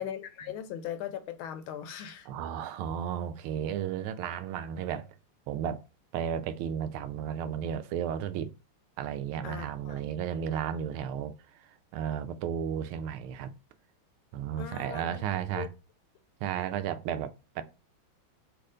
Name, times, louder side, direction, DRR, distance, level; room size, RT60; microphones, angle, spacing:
voice 1, 0.0-2.3 9.4-10.0 14.6-15.3 15.5-15.7, left 10 dB, 80° left, 1.5 m, -39 dB
voice 2, 2.3-5.1 5.5-5.8 6.1-8.5 9.0-11.7 11.9-13.5 14.3-15.7 16.4-17.6, right 9 dB, 85° right, 1.4 m, -33 dB
4.4 x 2.5 x 4.9 m
omnidirectional pair, 2.3 m